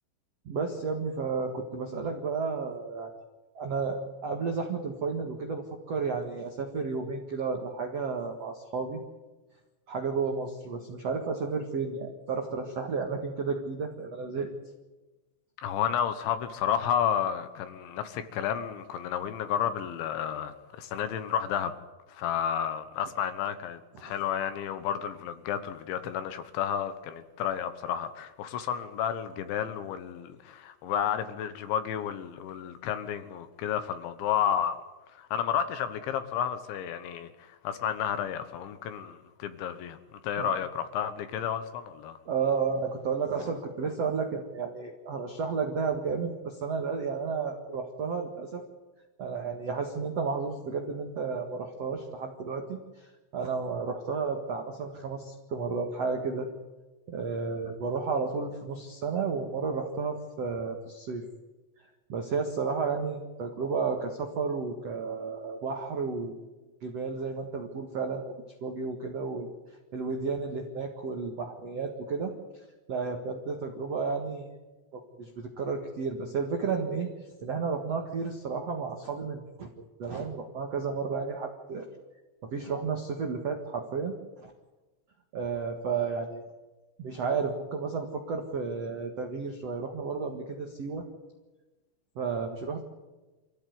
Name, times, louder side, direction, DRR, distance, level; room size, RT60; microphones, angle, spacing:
voice 1, 0.4-3.1 3.5-9.0 9.9-14.5 23.9-24.2 40.4-40.6 42.2-48.6 49.2-52.8 53.3-56.5 57.1-61.2 62.1-66.4 66.8-68.3 68.6-69.5 69.9-72.3 72.9-74.5 74.9-77.1 77.4-79.7 80.0-81.9 82.4-84.1 84.4-84.5 85.3-86.4 87.0-91.0 92.1-92.8, right 5 dB, 85° right, 1.4 m, -32 dB
voice 2, 15.6-21.7 22.1-34.8 35.1-42.2, left 9 dB, 70° left, 3.2 m, -31 dB
26.0 x 15.5 x 9.5 m
omnidirectional pair, 6.0 m